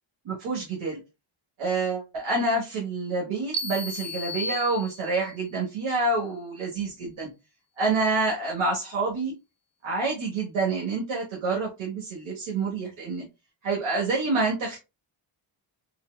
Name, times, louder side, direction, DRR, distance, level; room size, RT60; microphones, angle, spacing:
voice 1, 0.2-1.0 1.6-7.3 7.8-9.3 9.8-13.2 13.6-14.8, right 3 dB, 75° right, -3 dB, 1.2 m, -27 dB
sound 1, 3.5-5.4, left 1 dB, 35° right, 0.7 m, -34 dB
4.0 x 2.2 x 2.2 m, 0.26 s
wide cardioid pair, 125°, 49 cm